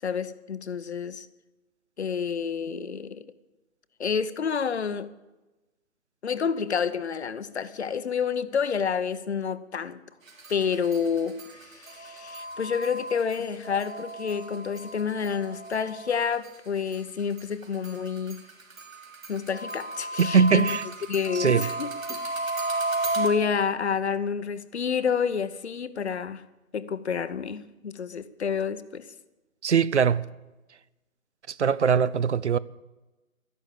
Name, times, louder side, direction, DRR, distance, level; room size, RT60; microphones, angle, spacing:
voice 1, 0.0-1.3 2.0-3.3 4.0-5.1 6.2-10.0 10.5-18.4 19.3-20.7 21.1-22.3 23.2-26.4 26.7-29.1, left 6 dB, 55° left, 0.9 m, -29 dB
sound 1, 10.3-16.5 16.9-23.3, right 2 dB, 75° right, 3.2 m, -34 dB
voice 2, 20.2-20.8 21.3-21.7 29.6-30.3 31.5-32.6, right 6 dB, 55° right, 0.6 m, -21 dB
13.0 x 11.0 x 8.4 m
hypercardioid pair, 170°, 41 cm